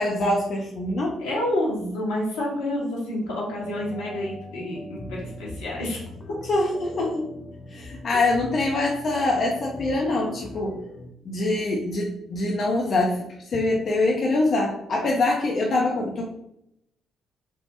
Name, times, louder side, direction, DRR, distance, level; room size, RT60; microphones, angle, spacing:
voice 1, 0.0-1.2 6.4-7.3 7.7-10.8 11.3-13.2 13.5-16.3, left 2 dB, 55° left, -2 dB, 0.5 m, -24 dB
voice 2, 1.2-6.0, left 1 dB, 80° left, -5 dB, 0.9 m, -28 dB
sound 1, 3.5-11.1, left 1 dB, 25° left, 0.9 m, -41 dB
3.2 x 2.0 x 2.9 m, 0.79 s
hypercardioid pair, 45°, 0 cm